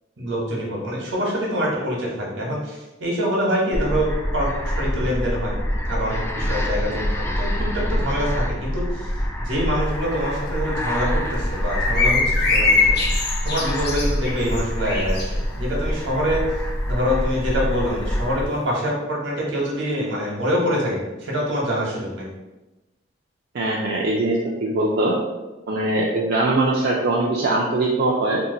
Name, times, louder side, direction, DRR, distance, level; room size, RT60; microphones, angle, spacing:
voice 1, 0.2-5.6 5.9-9.1 9.4-13.0 13.4-16.4 16.9-22.3, equal, 80° right, -3 dB, 1.0 m, -25 dB
sound 1, 3.7-18.5, equal, 15° left, 0.3 m, -26 dB
sound 2, 11.7-15.3, left 4 dB, 60° left, 0.6 m, -22 dB
voice 2, 23.5-25.1 25.7-28.4, right 2 dB, 60° right, -3 dB, 0.4 m, -21 dB
2.7 x 2.1 x 3.7 m, 1.1 s
head